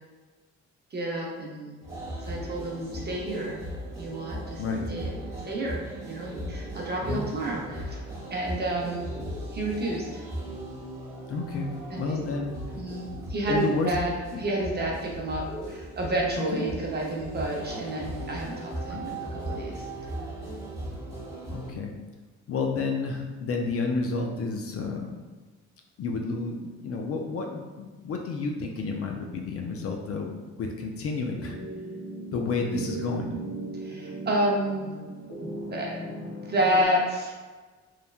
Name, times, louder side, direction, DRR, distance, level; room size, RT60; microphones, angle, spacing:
voice 1, 0.9-1.7 2.2-3.6 4.0-4.6 4.9-8.0 8.3-9.1 9.5-10.2 11.9-12.2 12.7-19.9 33.8-34.9 35.7-36.0 36.5-37.3, right 1 dB, 35° right, -2 dB, 0.7 m, -30 dB
sound 1, 1.8-21.7, right 1 dB, 10° right, 1.0 m, -38 dB
voice 2, 11.3-12.5 13.5-13.9 14.3-14.4 16.4-16.7 18.9-19.0 21.5-21.9 22.5-25.1 26.0-31.6 32.3-33.4, left 4 dB, 50° left, 2 dB, 0.4 m, -30 dB
sound 2, 31.3-36.9, right 2 dB, 85° left, 1.5 m, -38 dB
3.1 x 2.1 x 2.3 m, 1.3 s
cardioid pair, 90°, 30 cm